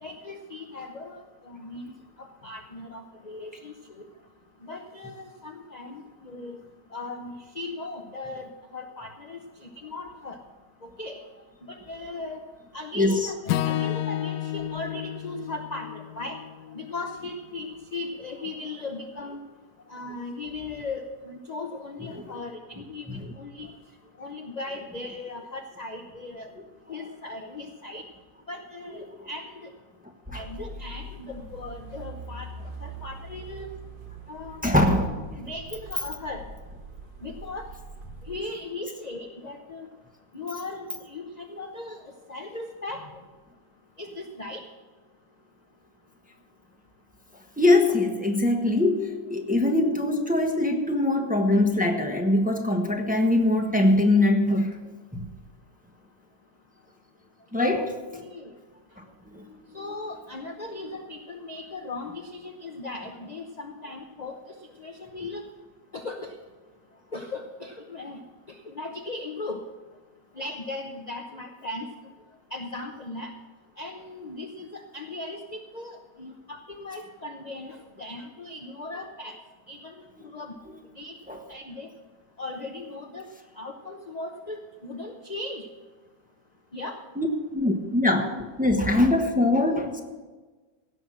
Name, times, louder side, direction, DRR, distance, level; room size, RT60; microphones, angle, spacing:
voice 1, 0.0-1.9 2.2-4.1 4.6-6.6 6.9-10.4 10.8-11.2 11.7-12.5 12.7-16.4 16.7-19.4 19.9-23.7 24.2-26.5 26.9-28.0 28.5-29.7 30.3-32.5 32.8-33.7 34.3-34.6 35.4-36.4 37.2-37.7 38.3-39.9 40.3-43.2 44.0-44.6 57.7-58.5 59.7-64.4 64.8-65.5 65.9-66.3 67.1-68.2 68.5-69.6 70.4-71.9 72.5-73.3 73.8-79.4 79.7-80.0 80.3-80.5 81.0-81.1 81.5-81.9 82.4-83.2 83.6-85.7 86.7-87.0, left 2 dB, 40° left, 4 dB, 0.6 m, -38 dB
Acoustic guitar / Strum, 13.5-17.8, left 12 dB, 75° left, 1.1 m, -31 dB
sound 1, 30.4-38.4, right 2 dB, 45° right, 0.7 m, -43 dB
voice 2, 34.6-35.2 47.6-54.8 55.1-55.3 57.5-57.9 59.3-59.8 81.3-81.4 87.2-87.3 87.5-88.3 88.6-90.0, left 2 dB, 5° right, 2 dB, 1.0 m, -22 dB
16.5 x 6.3 x 7.5 m, 1.3 s
omnidirectional pair, 1.9 m